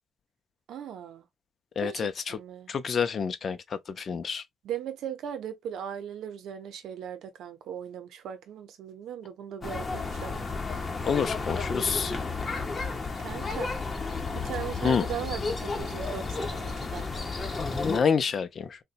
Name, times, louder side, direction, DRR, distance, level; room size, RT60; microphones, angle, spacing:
voice 1, 0.7-1.2 1.8-2.7 4.6-10.4 12.5-13.7 14.3-17.1, right 9 dB, 80° right, 0.7 m, -38 dB
voice 2, 1.8-2.4 2.7-4.4 11.1-12.1 14.8-15.1 17.7-18.8, left 6 dB, 50° left, 0.5 m, -28 dB
sound 1, 9.6-18.0, left 3 dB, 30° left, 0.9 m, -32 dB
3.9 x 2.2 x 2.4 m
cardioid pair, 90°, 0 cm